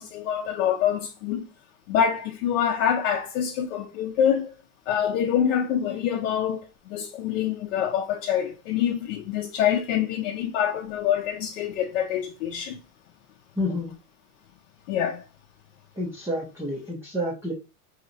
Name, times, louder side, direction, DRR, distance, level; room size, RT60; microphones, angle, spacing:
voice 1, 0.0-1.5 1.9-4.5 4.9-12.8 13.7-13.8 14.9-15.2, left 9 dB, 55° left, 0.7 m, -26 dB
voice 2, 13.6-13.9 16.0-17.5, left 1 dB, 5° right, 0.5 m, -29 dB
3.0 x 2.9 x 4.0 m
supercardioid pair, 140°, 45 cm